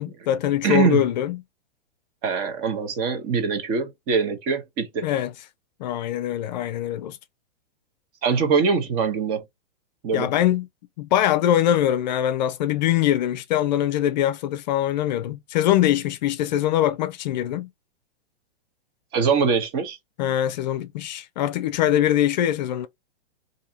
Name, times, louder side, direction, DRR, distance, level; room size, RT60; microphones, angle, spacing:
voice 1, 0.0-1.4 5.0-5.3 5.8-7.2 10.1-10.7 11.0-17.7 20.2-22.9, left 11 dB, 50° left, 0.5 m, -23 dB
voice 2, 0.6-1.0 2.2-5.0 8.2-9.4 10.0-10.3 19.1-20.0, right 5 dB, 35° right, 1.0 m, -23 dB
3.6 x 2.7 x 2.8 m
hypercardioid pair, 140°, 29 cm